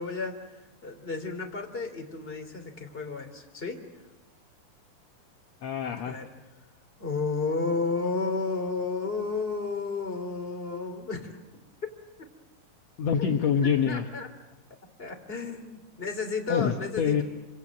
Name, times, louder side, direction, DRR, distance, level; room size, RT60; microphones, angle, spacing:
voice 1, 0.0-3.8 6.0-6.3 7.0-11.4 13.6-14.3 15.0-17.2, left 4 dB, 15° left, 3 dB, 3.0 m, -32 dB
voice 2, 5.6-6.2 13.0-14.1 16.5-17.2, left 7 dB, 65° left, 4 dB, 1.7 m, -26 dB
27.0 x 26.5 x 7.7 m, 1.0 s
omnidirectional pair, 4.5 m